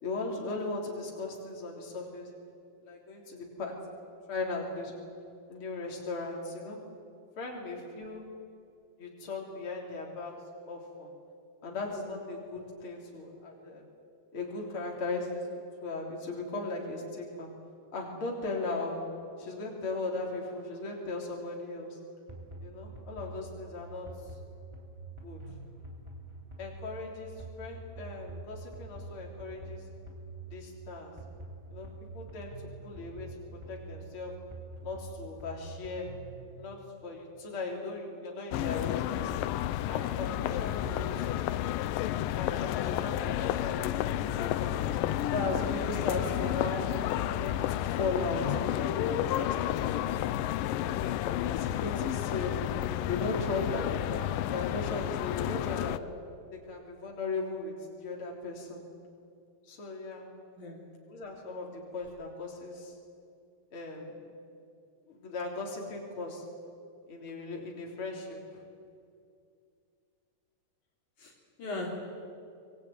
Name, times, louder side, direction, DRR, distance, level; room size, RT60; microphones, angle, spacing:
voice 1, 0.0-2.3 2.8-3.7 4.3-4.9 5.5-6.8 7.4-8.2 9.0-10.3 10.7-11.1 11.6-13.8 14.3-17.5 17.9-19.0 19.4-22.0 22.6-24.1 25.2-25.4 26.6-27.3 27.6-29.8 30.5-31.1 31.7-31.9 32.1-32.5 32.8-33.3 33.7-34.3 34.8-36.1 36.5-39.3 39.9-41.4 42.3-44.8 45.3-46.8 47.4-50.1 50.7-52.6 53.1-56.0 56.5-58.8 59.6-60.3 61.1-63.0 63.7-64.2 65.1-66.4 67.1-68.6, left 3 dB, 40° left, -1 dB, 4.2 m, -37 dB
sound 1, 22.3-36.5, right 2 dB, 10° right, 3.2 m, -46 dB
sound 2, 38.5-56.0, left 13 dB, 85° left, 2.4 m, -31 dB
voice 2, 40.8-41.1 60.6-60.8 71.2-71.3 71.6-72.0, left 2 dB, 60° left, -1 dB, 4.5 m, -39 dB
25.0 x 20.5 x 9.3 m, 2.4 s
omnidirectional pair, 3.9 m